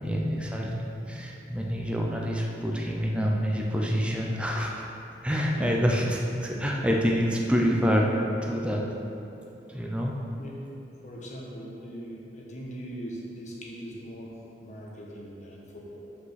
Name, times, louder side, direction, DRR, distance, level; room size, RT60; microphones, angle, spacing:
voice 1, 0.0-5.0 5.2-8.1 8.4-8.9 9.7-10.2, equal, 5° right, -1 dB, 0.7 m, -27 dB
voice 2, 1.1-1.4 5.5-5.8 10.4-10.6 11.0-14.3 14.6-16.0, equal, 40° left, -3 dB, 1.3 m, -41 dB
5.9 x 5.3 x 5.8 m, 2.9 s
head